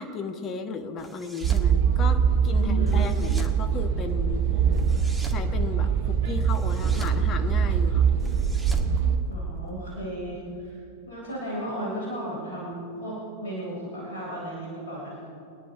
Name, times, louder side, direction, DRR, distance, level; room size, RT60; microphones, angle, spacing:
voice 1, 0.0-4.4 5.2-8.1, left 4 dB, 30° left, 7 dB, 1.3 m, -35 dB
sound 1, 1.0-1.7 2.9-3.6 4.7-5.5 6.5-7.2 8.2-9.7, right 4 dB, 5° right, 1.5 m, -42 dB
sound 2, 1.4-9.2, right 6 dB, 55° right, 1.5 m, -23 dB
voice 2, 2.5-3.1 9.3-10.8 11.1-15.2, right 1 dB, 60° left, -5 dB, 3.9 m, -34 dB
25.0 x 10.0 x 3.8 m, 2.5 s
figure-of-eight pair, 90°, 0 cm